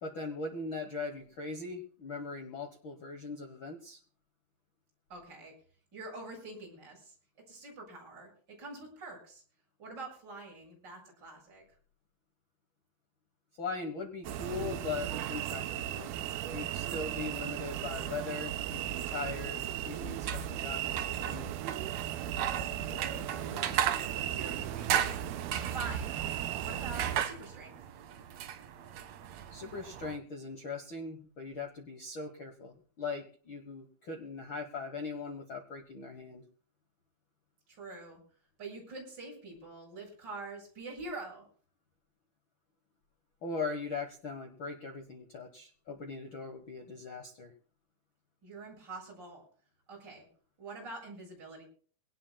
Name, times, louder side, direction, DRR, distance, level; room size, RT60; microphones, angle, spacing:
voice 1, 0.0-4.0 13.6-16.1 16.5-21.6 29.5-36.4 43.4-47.5, left 4 dB, 70° left, 5 dB, 1.1 m, -40 dB
voice 2, 5.1-5.5 5.9-7.1 7.5-9.4 9.8-11.6 22.8-25.3 25.7-26.2 26.6-27.8 37.7-38.2 38.6-41.5 48.4-49.4 49.9-50.3 50.6-51.6, right 3 dB, 25° right, -1 dB, 7.5 m, -45 dB
sound 1, 14.2-27.2, right 11 dB, 85° right, 2.7 m, -36 dB
sound 2, 20.1-30.2, right 10 dB, 70° right, 1.7 m, -36 dB
23.0 x 18.0 x 2.2 m, 0.44 s
omnidirectional pair, 4.3 m